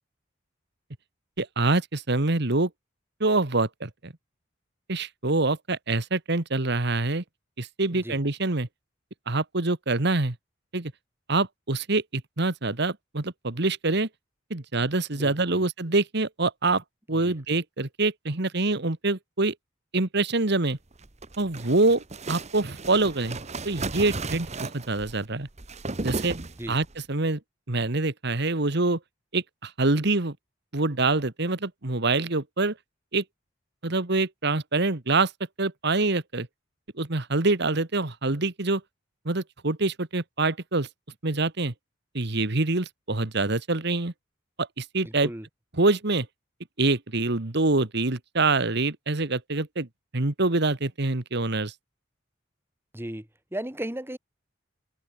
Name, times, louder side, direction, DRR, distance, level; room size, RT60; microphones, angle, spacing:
voice 1, 1.4-2.7 3.2-4.1 4.9-7.2 7.6-8.7 9.3-10.4 10.7-10.9 11.3-14.1 14.5-16.8 17.1-19.5 19.9-20.8 21.4-23.4 23.7-25.5 26.0-26.4 26.7-27.4 27.7-29.0 29.3-30.4 30.7-32.7 33.1-33.2 33.8-35.3 35.6-36.5 37.0-38.8 39.3-40.9 41.2-41.7 42.1-44.1 44.6-45.3 45.8-46.3 46.8-49.9 50.1-51.7, right 3 dB, 60° right, 1.7 m, -25 dB
voice 2, 7.9-8.2 15.1-15.6 17.1-17.4 26.6-26.8 45.0-45.5 52.9-54.2, right 1 dB, 10° right, 1.9 m, -36 dB
sound 1, 20.9-26.9, right 3 dB, 35° right, 1.3 m, -35 dB
head